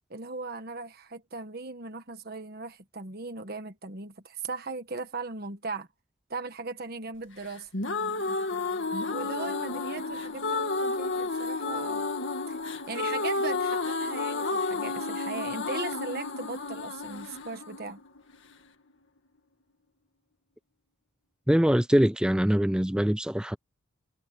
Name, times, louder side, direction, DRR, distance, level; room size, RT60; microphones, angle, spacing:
voice 1, 0.1-5.9 6.3-7.7 9.1-12.1 12.5-12.6 12.9-18.0, right 3 dB, 50° right, 1.4 m, -38 dB
sound 1, 7.5-18.5, left 3 dB, 65° left, 2.0 m, -31 dB
voice 2, 21.5-23.6, equal, 5° right, 0.4 m, -23 dB
head